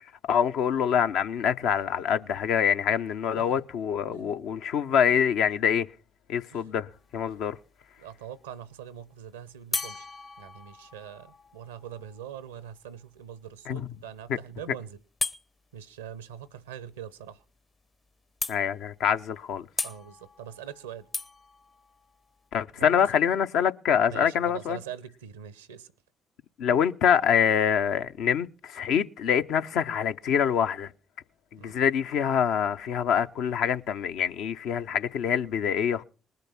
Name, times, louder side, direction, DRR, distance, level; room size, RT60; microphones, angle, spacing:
voice 1, 0.3-5.9 6.3-7.6 13.7-13.9 18.5-19.7 22.5-24.8 26.6-30.9 31.5-36.0, left 8 dB, 65° left, 0.7 m, -25 dB
voice 2, 4.1-4.4 6.5-6.7 8.0-10.1 10.4-15.0 15.7-17.4 19.8-21.1 22.8-23.0 24.0-25.9 31.6-31.8, right 9 dB, 80° right, 0.7 m, -43 dB
sound 1, 6.9-7.4 9.7-13.4 15.2-15.4 17.4-17.5 17.8-17.9 18.4-19.0 19.8-22.5, left 3 dB, 30° left, 0.7 m, -37 dB
20.0 x 6.7 x 5.9 m
figure-of-eight pair, 45°, 0 cm